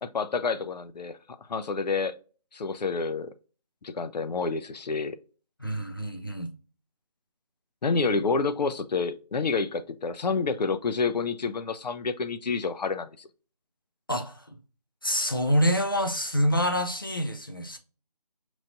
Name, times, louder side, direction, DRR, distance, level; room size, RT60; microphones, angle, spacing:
voice 1, 0.0-1.2 1.5-2.1 2.5-3.3 3.8-5.2 7.8-13.3, left 4 dB, 90° left, 0.5 m, -28 dB
voice 2, 5.6-6.5 14.1-14.6 15.0-17.8, equal, 35° left, 0.5 m, -26 dB
5.3 x 3.1 x 2.5 m
figure-of-eight pair, 180°, 21 cm